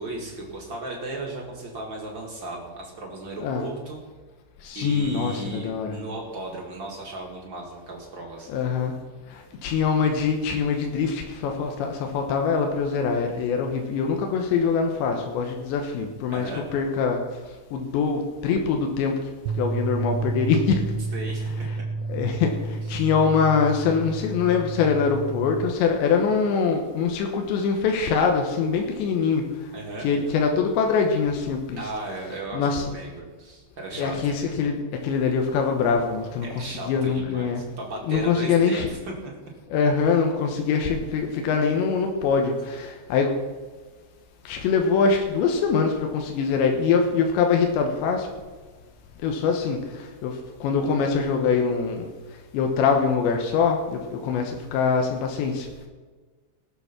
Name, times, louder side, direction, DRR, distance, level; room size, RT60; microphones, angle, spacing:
voice 1, 0.0-4.0 4.7-8.5 16.3-16.6 21.1-21.8 22.8-23.0 29.7-30.1 31.8-34.1 36.4-39.3, right 2 dB, 45° right, -1 dB, 1.5 m, -36 dB
voice 2, 4.6-6.0 8.5-8.9 9.6-17.2 17.7-19.1 19.6-20.8 22.1-29.4 30.0-31.8 32.5-32.9 34.0-34.8 35.0-36.5 36.9-37.6 38.1-38.9 39.7-43.3 44.5-48.3 49.2-49.8 50.2-50.3 50.6-52.1 52.5-55.7, left 5 dB, 90° left, 3 dB, 3.4 m, -23 dB
sound 1, 19.5-25.7, right 3 dB, 85° right, 3.0 m, -30 dB
18.5 x 7.0 x 5.9 m, 1.4 s
omnidirectional pair, 5.0 m